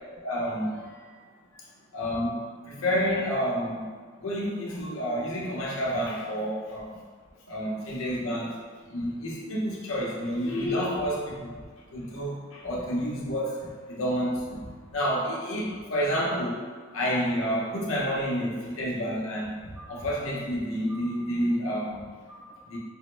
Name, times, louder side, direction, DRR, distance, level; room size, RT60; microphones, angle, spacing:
voice 1, 0.2-1.3 1.9-3.9 4.2-7.0 7.5-8.6 8.9-11.6 11.9-16.6 16.9-22.8, equal, 75° left, -3 dB, 0.7 m, -30 dB
3.5 x 2.1 x 3.1 m, 1.6 s
head